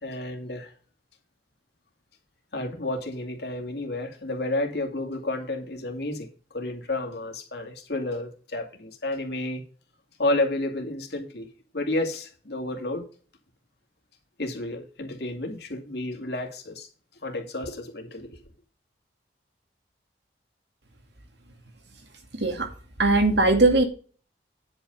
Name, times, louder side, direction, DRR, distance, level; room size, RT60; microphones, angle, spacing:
voice 1, 0.0-0.7 2.5-6.3 6.5-9.6 10.2-11.5 11.7-13.1 14.4-16.9 17.2-18.3, left 2 dB, 65° left, 2.3 m, -31 dB
voice 2, 22.3-22.7 23.0-23.8, right 2 dB, 70° right, 2.3 m, -19 dB
9.9 x 5.6 x 5.4 m
head